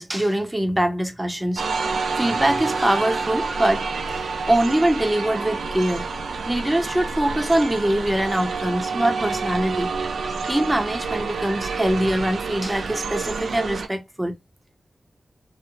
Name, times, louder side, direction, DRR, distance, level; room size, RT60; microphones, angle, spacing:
voice 1, 0.0-6.1 6.5-9.9 10.5-14.3, right 1 dB, 15° right, 0.7 m, -23 dB
sound 1, 1.6-13.9, right 4 dB, 90° right, 0.4 m, -28 dB
2.4 x 2.0 x 3.0 m
cardioid pair, 50°, 0 cm